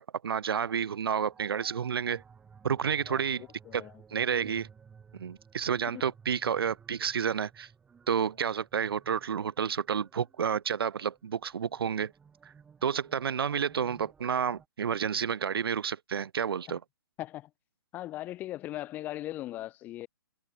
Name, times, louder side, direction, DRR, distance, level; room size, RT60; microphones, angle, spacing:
voice 1, 0.0-2.2 2.6-3.4 3.7-3.8 4.1-4.7 5.1-7.7 8.1-12.1 12.8-16.8, right 7 dB, 80° right, 0.7 m, -30 dB
sound 1, 0.6-14.7, right 6 dB, 5° right, 2.4 m, -57 dB
voice 2, 3.6-4.0 5.9-6.0 17.2-17.5 17.9-20.1, left 15 dB, 15° left, 0.9 m, -39 dB
hypercardioid pair, 165°, 13 cm